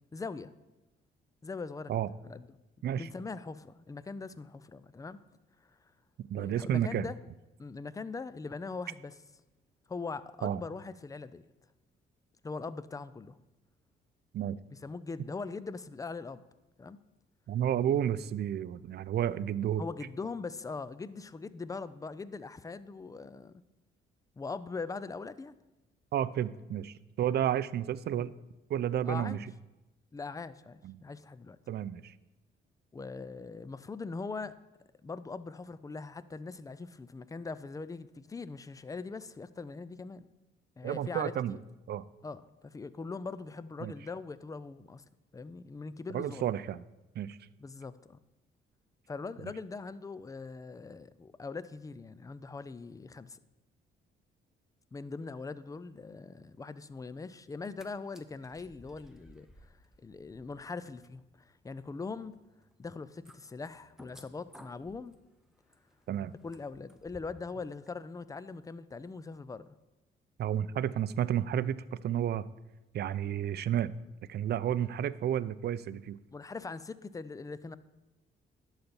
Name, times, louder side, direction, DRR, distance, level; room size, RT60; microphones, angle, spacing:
voice 1, 0.1-0.5 1.4-2.6 3.0-5.2 6.4-7.2 7.6-9.1 9.9-11.4 12.4-13.4 14.7-16.4 16.8-17.0 19.8-23.6 24.4-25.5 28.2-28.3 29.0-29.4 30.1-31.6 32.9-34.6 35.0-40.3 40.8-41.6 42.2-45.0 45.3-46.5 47.6-48.2 49.1-53.4 54.9-62.3 62.8-65.1 66.4-69.8 76.3-77.8, left 4 dB, 15° left, 15 dB, 0.4 m, -41 dB
voice 2, 6.3-7.1 10.4-10.6 14.3-14.6 17.5-19.8 26.1-28.3 28.7-29.4 30.8-31.0 31.7-32.1 40.8-41.6 41.9-42.1 43.8-43.9 46.1-46.8 47.2-47.4 49.4-49.5 66.1-66.3 70.4-72.4 72.9-73.9 74.3-76.2, right 10 dB, 55° right, 18 dB, 0.4 m, -31 dB
sound 1, 57.5-57.9 58.1-67.5 67.9-68.0, equal, ahead, 0.8 m, -59 dB
11.5 x 4.0 x 6.9 m, 1.0 s
cardioid pair, 90°, 20 cm